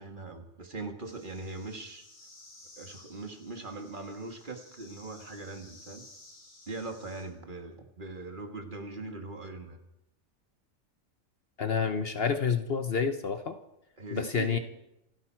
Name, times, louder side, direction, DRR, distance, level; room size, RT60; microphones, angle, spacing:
voice 1, 0.0-2.1 2.8-6.1 6.7-9.8 14.0-14.6, right 3 dB, 40° right, 5 dB, 1.7 m, -40 dB
sound 1, 1.0-7.2, left 2 dB, 85° left, 5.4 m, -55 dB
voice 2, 11.6-13.6 14.1-14.6, left 6 dB, 50° left, 8 dB, 1.0 m, -29 dB
27.0 x 11.0 x 4.5 m, 0.87 s
omnidirectional pair, 1.4 m